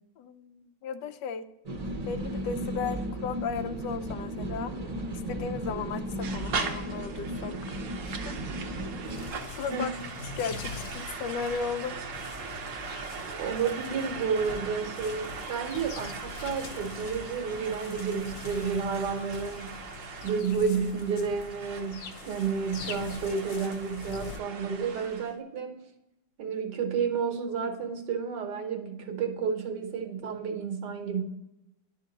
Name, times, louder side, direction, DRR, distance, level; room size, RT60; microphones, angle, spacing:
voice 1, 0.2-1.5 2.1-4.7 5.3-8.4 9.6-9.9 10.4-12.0, left 6 dB, 85° left, 10 dB, 1.2 m, -35 dB
sound 1, 1.6-9.3, right 1 dB, 35° right, 0.7 m, -35 dB
sound 2, 6.2-25.3, right 5 dB, 60° right, 0.9 m, -40 dB
sound 3, 8.7-24.4, left 5 dB, 70° left, 0.6 m, -43 dB
voice 2, 13.3-19.8 20.2-25.8 26.4-31.2, right 6 dB, 80° right, 4 dB, 1.6 m, -31 dB
10.5 x 3.6 x 3.9 m, 0.90 s
omnidirectional pair, 1.8 m